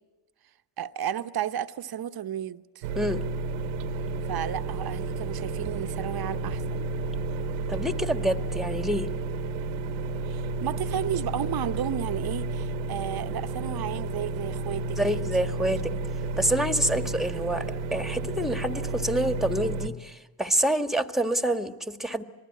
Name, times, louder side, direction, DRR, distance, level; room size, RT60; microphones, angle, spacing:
voice 1, 0.8-2.8 4.3-6.9 10.3-15.3 15.9-16.0 16.9-17.2, right 10 dB, 50° right, 1.0 m, -33 dB
sound 1, 2.8-19.9, right 3 dB, 90° right, 1.3 m, -31 dB
voice 2, 7.7-9.1 15.0-15.9 16.4-22.2, right 1 dB, ahead, 1.7 m, -27 dB
27.0 x 19.5 x 9.7 m
hypercardioid pair, 55°, 46 cm